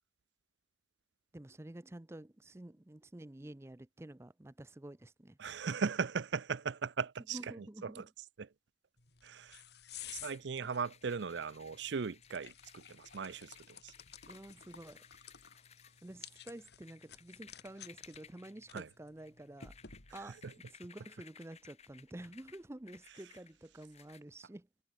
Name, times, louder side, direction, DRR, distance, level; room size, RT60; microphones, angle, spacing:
voice 1, 1.3-5.4 7.3-8.1 10.0-10.2 14.3-15.0 16.0-19.7 20.1-24.7, right 1 dB, 15° right, 0.5 m, -50 dB
voice 2, 5.4-8.1 8.4-8.5 9.2-9.6 10.1-13.9 18.7-18.9 20.2-20.5, right 5 dB, 65° right, 0.5 m, -38 dB
sound 1, 9.0-20.4, left 9 dB, 55° left, 2.6 m, -54 dB
sound 2, 10.0-24.2, left 7 dB, 35° left, 4.2 m, -61 dB
head